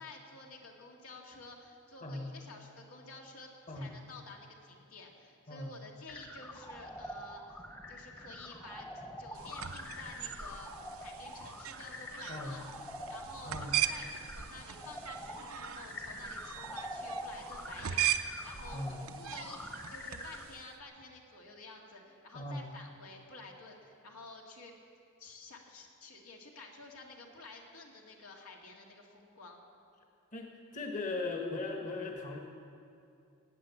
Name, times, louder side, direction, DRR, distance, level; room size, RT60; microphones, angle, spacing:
voice 1, 0.0-8.9 9.2-12.7 13.1-24.7 25.2-29.6, left 3 dB, 80° left, 0 dB, 2.1 m, -51 dB
voice 2, 2.0-2.3 3.7-4.0 5.5-5.8 12.3-12.6 13.4-13.8 18.7-19.0 22.3-22.7 30.3-32.4, left 2 dB, 35° left, 2 dB, 1.4 m, -38 dB
sound 1, 6.1-20.4, equal, 10° left, 1.0 m, -45 dB
sound 2, 9.3-20.7, right 11 dB, 75° right, 0.6 m, -39 dB
18.0 x 8.7 x 8.3 m, 2.5 s
head